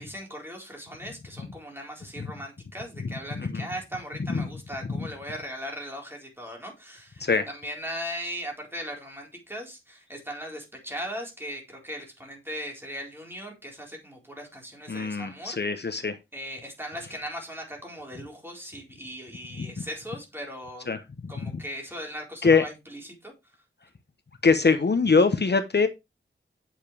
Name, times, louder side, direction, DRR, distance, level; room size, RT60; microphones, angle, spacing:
voice 1, 0.0-15.6 16.3-20.9 21.3-23.6, equal, 10° right, 4.2 m, -38 dB
voice 2, 14.9-16.2 19.6-19.7 20.9-21.3 22.4-22.6 24.4-25.9, left 4 dB, 55° left, 0.9 m, -23 dB
9.1 x 7.3 x 3.3 m
wide cardioid pair, 80°, 21 cm